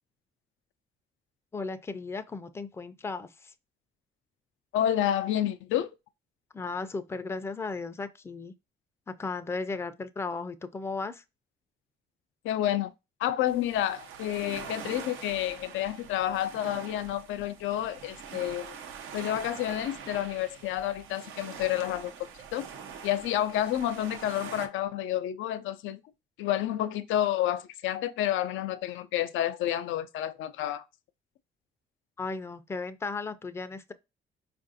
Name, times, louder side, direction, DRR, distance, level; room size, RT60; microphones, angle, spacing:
voice 1, 1.5-3.5 6.5-8.5 9.1-11.2 32.2-33.9, left 4 dB, 15° left, 0.4 m, -35 dB
voice 2, 4.7-5.9 12.4-12.9 13.2-18.8 19.1-22.1 22.5-22.7 23.0-26.0 26.4-30.8, left 12 dB, 80° left, 0.4 m, -29 dB
sound 1, 13.5-24.7, right 7 dB, 85° right, 0.6 m, -44 dB
4.5 x 2.5 x 2.6 m
cardioid pair, 90°, 20 cm